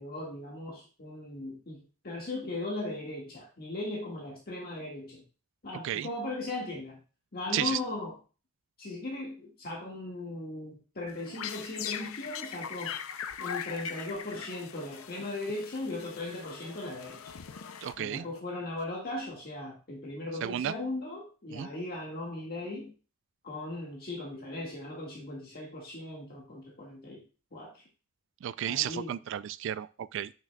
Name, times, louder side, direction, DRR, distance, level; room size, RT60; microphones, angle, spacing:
voice 1, 0.0-5.2 5.6-7.0 7.3-8.2 8.8-13.0 13.4-17.2 18.0-22.9 23.4-27.2 27.5-27.8 28.6-29.1, left 2 dB, 45° left, -3 dB, 1.8 m, -38 dB
sound 1, 11.1-18.4, left 8 dB, 80° left, 0.5 m, -41 dB
voice 2, 17.8-18.3 20.4-20.7 21.5-21.7 28.4-30.3, right 11 dB, 60° right, 17 dB, 0.3 m, -33 dB
8.8 x 6.0 x 2.3 m, 0.34 s
head